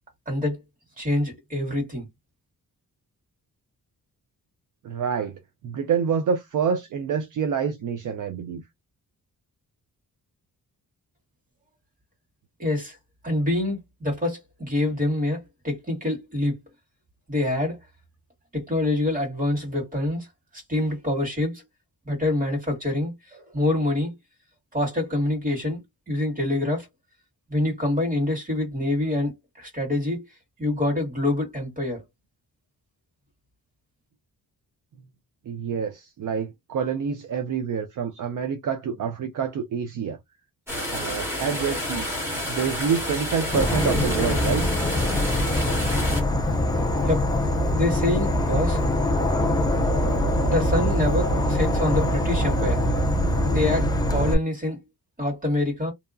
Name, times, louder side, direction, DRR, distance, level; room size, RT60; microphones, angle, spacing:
voice 1, 0.3-0.6 1.0-2.1 12.6-13.0 13.2-16.6 17.3-17.8 18.5-20.3 20.7-21.6 22.1-24.1 24.7-25.8 26.1-26.9 27.5-29.3 29.6-30.3 30.6-32.0 47.1-47.3 47.7-48.8 50.5-52.8 53.5-54.8 55.2-55.9, left 1 dB, 25° right, 1.7 m, -26 dB
voice 2, 4.8-5.4 5.6-8.6 35.5-40.2 40.9-42.1 42.5-44.7, right 6 dB, 60° right, 0.5 m, -27 dB
sound 1, 40.7-46.2, equal, 5° right, 1.3 m, -29 dB
Insect / Frog, 43.5-54.3, left 1 dB, 10° left, 0.4 m, -23 dB
2.7 x 2.2 x 2.4 m
wide cardioid pair, 175°, 35 cm